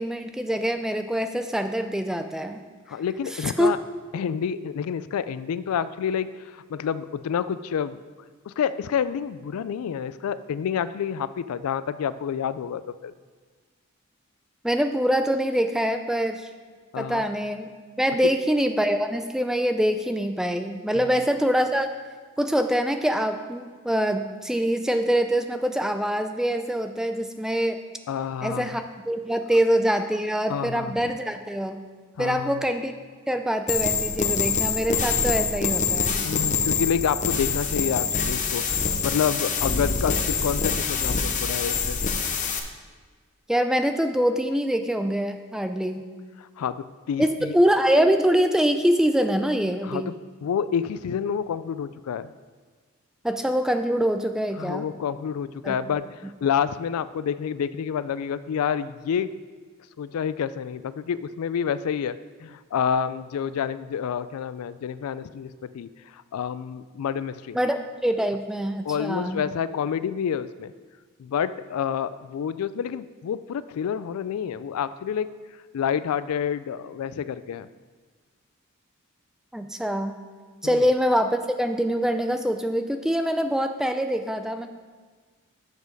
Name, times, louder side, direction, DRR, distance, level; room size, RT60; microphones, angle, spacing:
voice 1, 0.0-2.6 3.3-3.8 14.6-16.5 17.0-17.7 18.0-21.9 22.4-27.8 28.4-31.8 32.2-32.9 33.3-36.3 43.5-46.0 47.2-50.1 53.2-54.9 55.6-55.8 67.5-69.4 79.5-80.1 80.6-84.7, equal, ahead, 7 dB, 0.3 m, -24 dB
voice 2, 2.9-3.8 4.1-6.3 6.5-8.0 8.5-13.1 16.9-17.2 20.9-21.1 28.1-28.8 30.5-30.9 32.2-32.6 36.2-42.0 46.4-47.5 49.8-50.1 50.4-52.3 54.6-59.3 60.0-67.6 68.8-70.7 71.2-75.3 75.7-77.7 80.6-80.8, left 7 dB, 85° left, 16 dB, 0.3 m, -28 dB
sound 1, 33.7-42.6, left 6 dB, 35° left, 0.6 m, -25 dB
7.1 x 6.4 x 5.3 m, 1.5 s
head